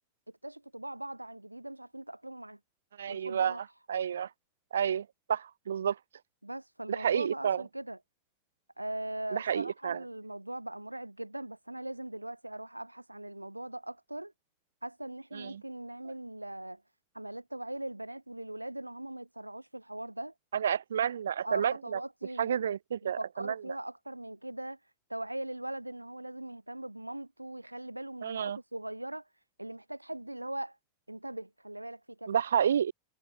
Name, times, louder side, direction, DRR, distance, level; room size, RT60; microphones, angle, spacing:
voice 1, 0.4-2.6 3.1-3.6 6.4-8.0 8.8-14.3 14.8-16.8 17.1-20.3 21.4-22.6 23.0-24.8 25.1-29.2 29.6-30.8 31.1-32.4, right 1 dB, 85° right, 1.0 m, -40 dB
voice 2, 3.0-3.6 3.9-4.3 4.7-6.0 6.9-7.6 9.3-10.0 15.3-15.6 20.5-22.0 22.4-23.6 28.2-28.6 32.3-32.9, right 8 dB, 70° right, 0.7 m, -30 dB
figure-of-eight pair, 85°, 0 cm